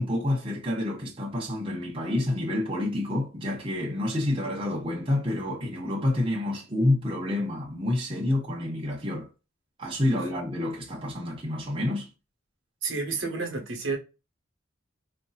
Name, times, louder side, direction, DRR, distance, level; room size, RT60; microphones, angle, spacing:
voice 1, 0.0-9.3 9.8-12.1, left 1 dB, 30° right, 0.9 m, -28 dB
voice 2, 12.8-14.0, right 4 dB, 70° right, 1.2 m, -30 dB
4.4 x 2.7 x 2.3 m
head